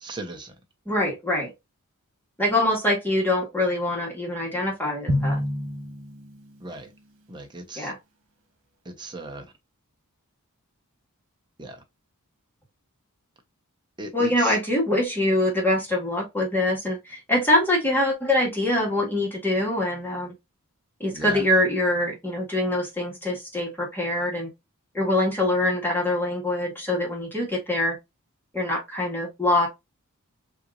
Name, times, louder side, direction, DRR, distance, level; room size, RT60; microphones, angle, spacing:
voice 1, 0.0-0.5 6.6-6.9 7.3-7.9 8.9-9.4 11.6-11.8 14.0-14.5 21.2-21.4, right 2 dB, 20° right, 1.0 m, -37 dB
voice 2, 0.9-1.5 2.4-5.4 7.8-8.0 14.1-20.3 21.0-24.5 24.9-28.0 28.5-29.7, left 1 dB, 10° left, 1.9 m, -24 dB
Drum, 5.1-6.8, left 1 dB, 60° right, 1.5 m, -28 dB
5.6 x 3.0 x 2.5 m
head